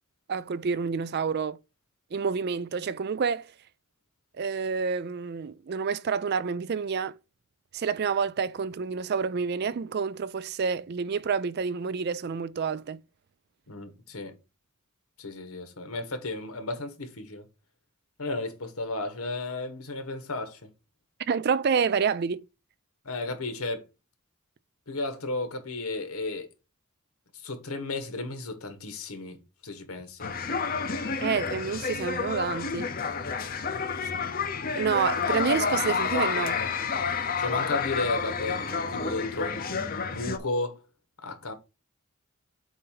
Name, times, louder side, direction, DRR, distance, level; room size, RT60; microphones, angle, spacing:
voice 1, 0.3-1.6 2.1-3.5 4.4-7.1 7.7-13.0 21.3-22.4 31.2-32.9 34.7-36.6, right 6 dB, 45° right, 0.4 m, -28 dB
voice 2, 13.7-14.4 15.2-17.5 18.2-20.7 23.0-23.8 24.9-26.5 27.3-30.3 37.4-40.8 41.2-41.5, left 2 dB, 75° left, 1.5 m, -34 dB
sound 1, 30.2-40.4, left 5 dB, 40° left, 0.7 m, -30 dB
7.8 x 2.7 x 5.7 m
head